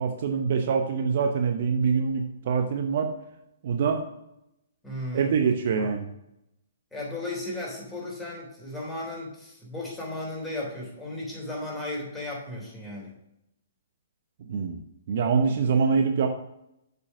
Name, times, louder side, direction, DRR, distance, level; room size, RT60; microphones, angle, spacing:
voice 1, 0.0-3.1 3.6-4.0 5.1-6.1 14.5-14.8 15.1-16.3, right 6 dB, 50° right, 5 dB, 0.9 m, -24 dB
voice 2, 4.8-5.4 5.8-5.9 6.9-13.1, left 1 dB, 5° left, -5 dB, 3.3 m, -35 dB
6.8 x 5.4 x 6.1 m, 0.82 s
figure-of-eight pair, 120°, 0 cm